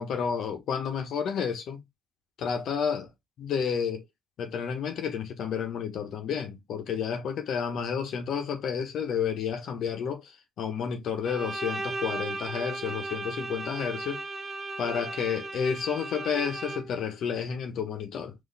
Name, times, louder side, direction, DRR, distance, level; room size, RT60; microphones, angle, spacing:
voice 1, 0.0-1.8 2.4-3.1 3.4-4.0 4.4-14.2 14.8-18.3, left 7 dB, 75° left, 1.1 m, -31 dB
Bowed string instrument, 11.2-17.1, right 3 dB, 35° right, 1.4 m, -36 dB
4.1 x 2.9 x 4.1 m
cardioid pair, 90°, 0 cm